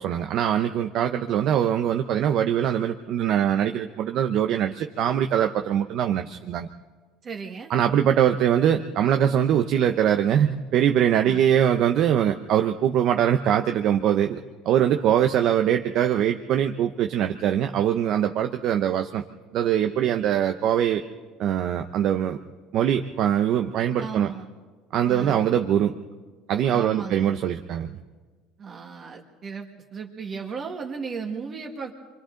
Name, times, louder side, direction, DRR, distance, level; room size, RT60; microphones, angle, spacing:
voice 1, 0.0-6.7 7.7-14.4 14.7-19.2 19.5-21.0 21.4-22.4 22.7-24.3 24.9-25.9 26.5-27.9, right 10 dB, 50° right, 6 dB, 0.7 m, -22 dB
voice 2, 7.2-7.7 11.2-11.4 24.0-24.4 25.0-25.4 26.7-27.3 28.6-31.9, right 5 dB, 35° right, 2 dB, 1.7 m, -35 dB
27.5 x 24.5 x 3.9 m, 1.4 s
cardioid pair, 140°, 0 cm